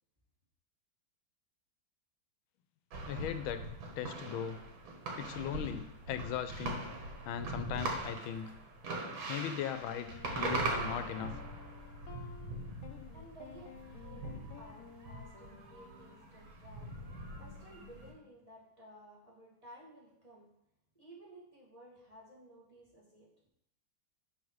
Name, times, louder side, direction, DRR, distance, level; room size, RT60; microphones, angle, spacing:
sound 1, 2.9-18.1, right 2 dB, 75° right, 2.2 m, -41 dB
voice 1, 3.1-3.6 4.0-4.6 5.2-6.8 7.2-8.5 9.3-11.3, left 9 dB, 85° left, 10 dB, 1.4 m, -38 dB
sound 2, 9.0-9.2 9.9-16.2, left 7 dB, 65° left, 0.9 m, -54 dB
voice 2, 13.1-16.9 17.4-20.5 20.9-23.3, right 1 dB, 20° right, -5 dB, 2.3 m, -55 dB
11.0 x 4.0 x 4.7 m, 0.78 s
omnidirectional pair, 2.2 m